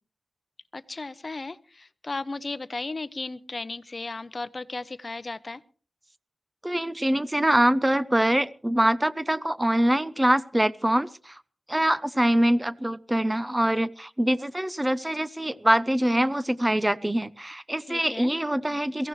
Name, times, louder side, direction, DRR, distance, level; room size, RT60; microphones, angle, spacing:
voice 1, 0.7-5.6 17.9-18.3, left 3 dB, 40° left, 15 dB, 0.7 m, -35 dB
voice 2, 6.6-11.4 11.7-19.1, right 1 dB, 15° right, 15 dB, 0.7 m, -24 dB
23.0 x 16.0 x 3.2 m, 0.40 s
wide cardioid pair, 90°, 0 cm